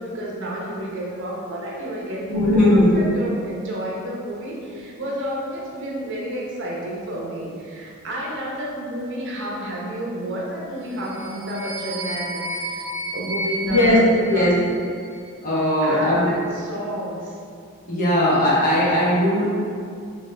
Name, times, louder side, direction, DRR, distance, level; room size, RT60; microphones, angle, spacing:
voice 1, 0.0-14.6 15.8-17.4, right 1 dB, 55° right, -4 dB, 0.9 m, -30 dB
voice 2, 2.3-2.9 13.6-14.6 15.4-16.4 17.9-19.4, left 1 dB, 40° left, -8 dB, 1.2 m, -18 dB
sound 1, 10.9-15.2, right 1 dB, 35° right, 1.5 m, -31 dB
5.3 x 3.0 x 3.3 m, 2.3 s
head